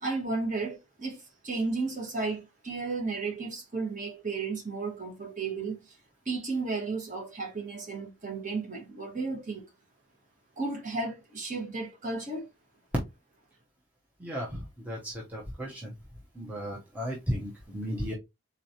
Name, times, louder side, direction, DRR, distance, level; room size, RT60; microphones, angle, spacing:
voice 1, 0.0-6.0 6.2-9.7 10.6-12.5, right 3 dB, 35° right, 1.3 m, -33 dB
voice 2, 14.2-15.9 16.4-18.1, equal, 5° right, 0.7 m, -35 dB
3.9 x 3.1 x 2.7 m
head